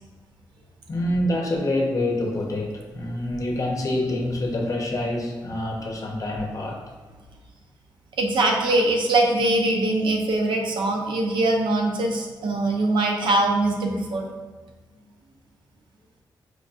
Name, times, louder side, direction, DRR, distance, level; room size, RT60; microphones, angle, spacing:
voice 1, 0.9-6.8, left 1 dB, 45° left, 0 dB, 0.7 m, -26 dB
voice 2, 8.2-14.3, right 2 dB, 80° right, 2 dB, 0.5 m, -22 dB
4.5 x 2.5 x 2.4 m, 1.3 s
cardioid pair, 70°, 8 cm